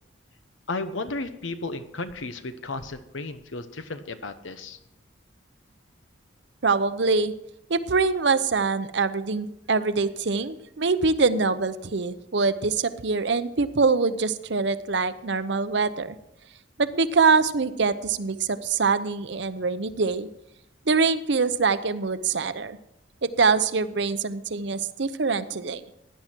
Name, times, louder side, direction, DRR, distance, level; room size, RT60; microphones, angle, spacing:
voice 1, 0.7-4.8, left 3 dB, 80° left, 10 dB, 1.0 m, -34 dB
voice 2, 6.6-7.3 7.7-16.1 16.8-20.3 20.9-22.8 23.2-25.8, right 4 dB, 60° right, 13 dB, 0.7 m, -24 dB
16.5 x 10.5 x 4.5 m, 0.83 s
head